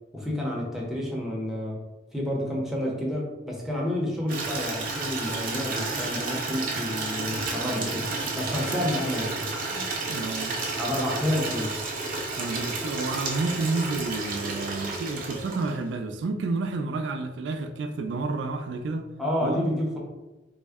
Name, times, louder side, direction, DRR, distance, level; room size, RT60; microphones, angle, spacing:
voice 1, 0.1-1.8 2.1-9.4 10.8-11.8 19.2-20.0, left 1 dB, ahead, -3 dB, 0.6 m, -29 dB
Water tap faucet / Liquid, 4.3-15.9, right 3 dB, 50° right, 0.6 m, -31 dB
sound 1, 7.6-8.6 8.9-9.2 11.1-11.2 12.0-15.0 15.3-15.8, right 1 dB, 50° left, 1.5 m, -47 dB
voice 2, 10.1-10.6 12.4-19.1 19.4-19.7, right 3 dB, 85° right, 7 dB, 0.3 m, -30 dB
3.6 x 2.1 x 3.4 m, 1.1 s
head